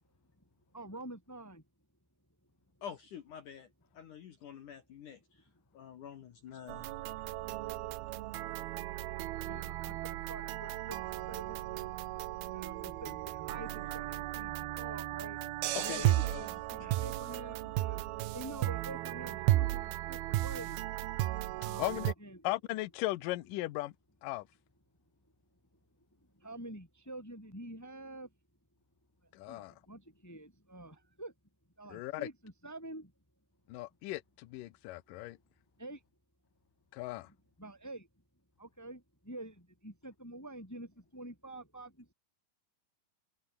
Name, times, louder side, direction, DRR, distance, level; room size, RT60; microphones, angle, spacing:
voice 1, 0.7-1.6 9.4-11.0 11.3-11.6 12.5-15.4 15.8-18.0 18.3-20.8 21.6-22.4 26.4-28.3 29.5-31.3 31.8-33.1 35.8-36.0 37.6-38.1 38.6-39.0 39.2-39.5 39.8-41.9, right 1 dB, 5° left, 3.2 m, -47 dB
voice 2, 2.8-3.7 3.9-5.4 5.7-6.9 15.7-16.4 16.8-16.9 20.3-20.4, left 8 dB, 60° left, 2.3 m, -45 dB
sound 1, 6.7-22.1, right 16 dB, 75° right, 2.5 m, -35 dB
voice 3, 21.8-22.1 22.4-23.9 24.2-24.4 29.3-29.7 31.9-32.3 33.7-35.4 36.9-37.3, left 18 dB, 85° left, 1.9 m, -37 dB
omnidirectional pair, 5.2 m